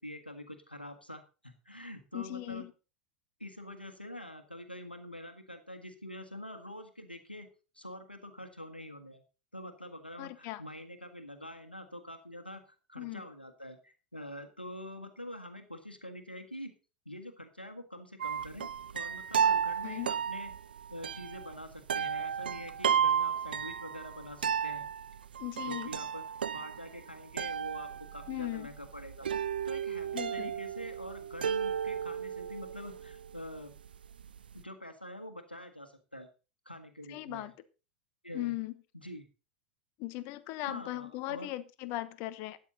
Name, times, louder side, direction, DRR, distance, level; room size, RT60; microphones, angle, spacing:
voice 1, 0.0-2.6 3.4-7.5 7.7-9.2 9.5-12.6 12.9-16.7 17.0-18.7 18.9-20.5 20.9-24.8 25.6-26.2 26.5-29.3 29.6-33.7 34.5-36.3 36.6-37.5 38.2-38.5 38.9-39.3 40.7-41.5, equal, 90° left, 6 dB, 1.7 m, -45 dB
voice 2, 2.1-2.7 10.2-10.6 13.0-13.2 19.8-20.1 25.4-26.0 28.3-28.7 30.1-30.5 37.1-37.5 38.3-38.7 40.0-42.6, left 18 dB, 45° left, 14 dB, 1.0 m, -38 dB
sound 1, 18.2-34.6, right 7 dB, 70° right, 0.5 m, -33 dB
13.0 x 9.5 x 4.1 m, 0.33 s
figure-of-eight pair, 85°, 5 cm